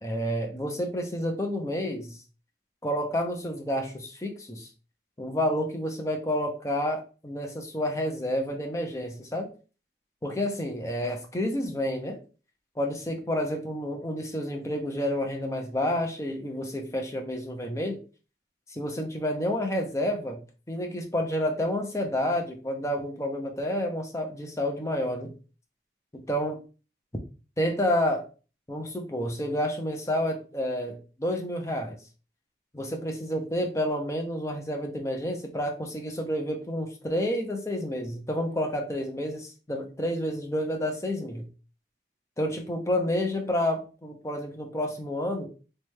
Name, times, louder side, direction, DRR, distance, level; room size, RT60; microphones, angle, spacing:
voice 1, 0.0-2.2 2.8-4.7 5.2-9.5 10.2-12.2 12.8-18.0 18.7-25.3 26.1-26.6 27.6-28.3 28.7-32.0 32.7-41.5 42.4-45.5, left 1 dB, 15° left, 2 dB, 0.6 m, -29 dB
3.2 x 3.2 x 3.4 m, 0.35 s
head